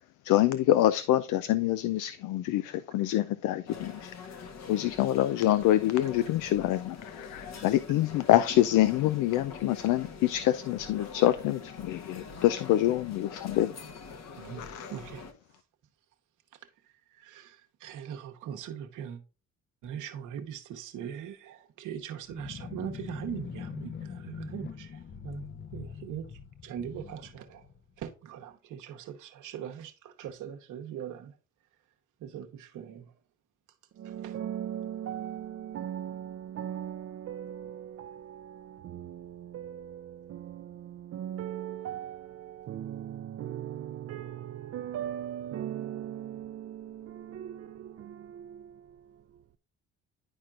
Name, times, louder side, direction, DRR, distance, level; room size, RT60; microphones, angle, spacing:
voice 1, 0.2-13.7 14.6-14.9, left 14 dB, 90° left, 0.5 m, -26 dB
sound 1, 3.7-15.3, left 5 dB, 60° left, 1.2 m, -44 dB
voice 2, 7.3-7.7 14.4-15.3 16.9-19.2 19.8-27.7 28.0-31.4 32.2-33.1 34.0-34.4, right 9 dB, 85° right, 1.1 m, -41 dB
sound 2, 22.2-28.2, left 7 dB, 35° left, 0.6 m, -43 dB
voice 3, 34.0-48.6, right 10 dB, 55° right, 0.5 m, -39 dB
11.0 x 4.4 x 2.4 m
cardioid pair, 90°, 30 cm